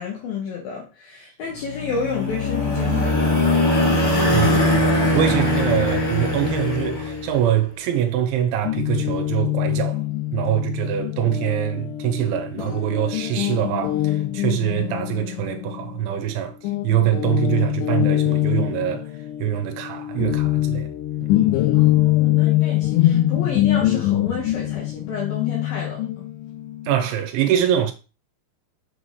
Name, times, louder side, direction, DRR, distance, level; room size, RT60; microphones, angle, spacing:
voice 1, 0.0-4.0 21.7-26.1, left 5 dB, 70° left, 2.5 m, -30 dB
sound 1, 1.7-7.4, left 2 dB, 35° left, 2.6 m, -21 dB
voice 2, 4.3-4.8 5.1-10.0 10.3-16.5 16.8-19.1 19.4-20.9 26.9-27.9, right 11 dB, 90° right, 3.2 m, -24 dB
Guitar, 8.6-16.3 16.6-27.1, left 15 dB, 90° left, 3.0 m, -23 dB
6.9 x 5.9 x 3.3 m
omnidirectional pair, 5.3 m